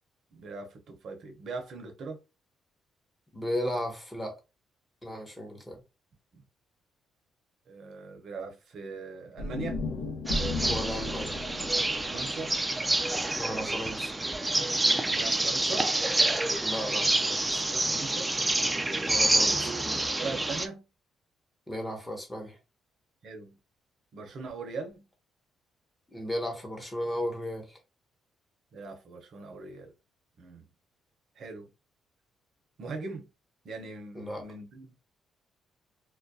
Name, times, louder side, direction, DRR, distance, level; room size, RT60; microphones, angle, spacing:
voice 1, 0.3-2.2 6.3-6.4 7.7-9.8 12.1-12.5 15.1-15.9 17.7-18.3 19.7-20.9 23.2-23.6 24.1-25.0 28.7-29.9 30.4-30.7 31.4-31.7 32.8-33.3 33.6-34.9, right 4 dB, 65° right, 0.7 m, -40 dB
voice 2, 3.3-4.4 5.0-5.8 10.7-11.4 13.3-14.1 16.6-17.6 19.1-19.7 21.7-22.6 26.1-27.8 34.1-34.4, equal, 15° left, 0.8 m, -35 dB
sound 1, 9.4-13.6, left 2 dB, 90° left, 0.5 m, -36 dB
sound 2, 10.3-20.7, right 2 dB, 15° right, 0.3 m, -28 dB
2.3 x 2.1 x 2.6 m
cardioid pair, 90°, 0 cm